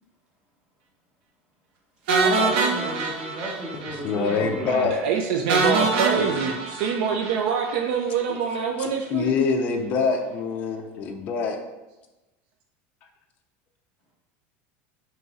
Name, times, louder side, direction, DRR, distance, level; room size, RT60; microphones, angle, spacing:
sound 1, 2.1-4.0 4.2-4.4 4.7-4.8 5.5-7.8, right 3 dB, 85° right, 0.7 m, -24 dB
voice 1, 2.2-4.7, equal, 20° right, -3 dB, 0.9 m, -33 dB
voice 2, 4.0-5.0 6.2-6.3 8.3-8.4 8.8-11.6, left 5 dB, 30° left, 3 dB, 0.4 m, -25 dB
voice 3, 4.6-9.3, right 6 dB, 65° right, 3 dB, 0.4 m, -25 dB
3.5 x 3.0 x 4.0 m, 1.1 s
cardioid pair, 180°, 6 cm